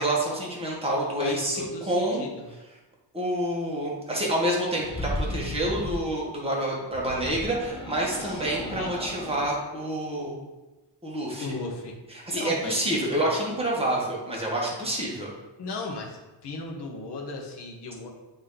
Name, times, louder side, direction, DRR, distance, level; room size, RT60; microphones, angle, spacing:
voice 1, 0.0-1.6 1.9-2.2 3.1-10.4 11.0-11.5 12.1-15.3, right 1 dB, 15° right, -4 dB, 1.6 m, -28 dB
voice 2, 1.2-2.5 8.2-9.0 11.4-12.0 12.3-13.4 15.6-18.1, left 3 dB, 70° left, 1 dB, 1.2 m, -36 dB
sound 1, 4.8-6.0 6.9-9.5, left 1 dB, 10° left, 0.6 m, -35 dB
8.1 x 3.1 x 3.9 m, 1.1 s
wide cardioid pair, 125°, 43 cm